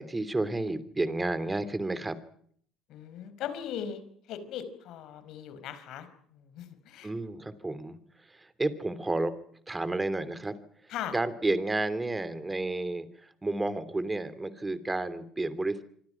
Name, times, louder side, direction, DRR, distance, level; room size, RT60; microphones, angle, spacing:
voice 1, 0.0-2.2 7.0-8.0 8.3-9.3 9.7-10.6 10.8-15.8, right 2 dB, 15° right, 13 dB, 3.1 m, -31 dB
voice 2, 2.9-7.1 10.9-11.1, left 9 dB, 60° left, 12 dB, 4.9 m, -39 dB
26.0 x 26.0 x 6.0 m, 0.62 s
hypercardioid pair, 65°, 0 cm